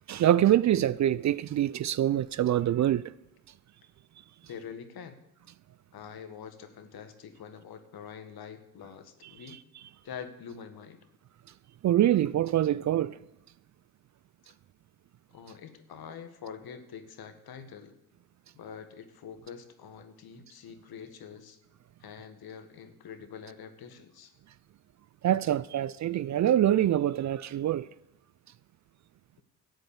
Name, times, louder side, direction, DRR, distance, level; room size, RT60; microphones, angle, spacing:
voice 1, 0.1-3.1 11.8-13.2 25.2-27.9, right 12 dB, 45° right, 0.5 m, -25 dB
voice 2, 4.5-5.2 5.9-9.6 10.0-11.0 15.3-17.9 18.5-21.6 22.0-24.3, left 7 dB, 60° left, 1.7 m, -45 dB
13.0 x 7.9 x 7.3 m
hypercardioid pair, 50°, 42 cm